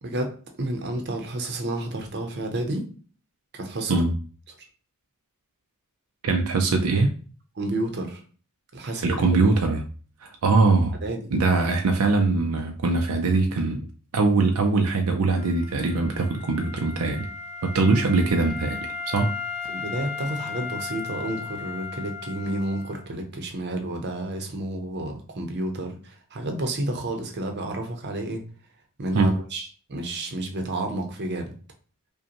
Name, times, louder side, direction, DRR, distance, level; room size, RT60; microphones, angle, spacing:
voice 1, 0.0-2.9 3.5-4.0 7.6-8.2 8.7-9.6 11.0-11.3 19.7-28.4 29.0-31.5, right 1 dB, 50° right, 4 dB, 0.8 m, -30 dB
voice 2, 6.2-7.1 9.0-9.8 10.2-11.0 11.3-13.8 14.1-17.3 17.6-19.3 29.1-29.3, right 3 dB, 80° right, 4 dB, 0.5 m, -22 dB
Wind instrument woodwind instrument, 15.4-23.1, left 5 dB, 30° left, 0.4 m, -36 dB
5.0 x 2.2 x 2.9 m, 0.40 s
head